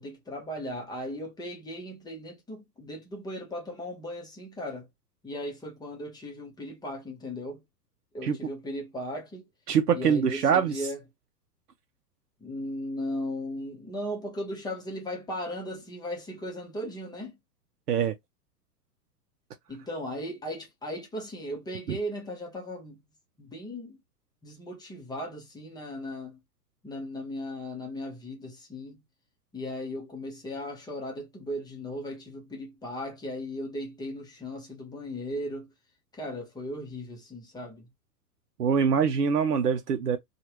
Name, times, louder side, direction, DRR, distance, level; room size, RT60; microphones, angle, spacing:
voice 1, 0.0-4.9 5.2-7.6 8.1-9.5 9.9-11.0 12.4-17.3 19.7-23.0 23.4-24.0 24.4-26.4 26.8-29.0 29.5-35.7 36.1-37.9, left 1 dB, 10° left, 0.8 m, -37 dB
voice 2, 9.7-10.9 17.9-18.1 21.9-22.0 38.6-40.2, right 7 dB, 75° right, 0.6 m, -24 dB
2.8 x 2.4 x 2.9 m
figure-of-eight pair, 100°, 47 cm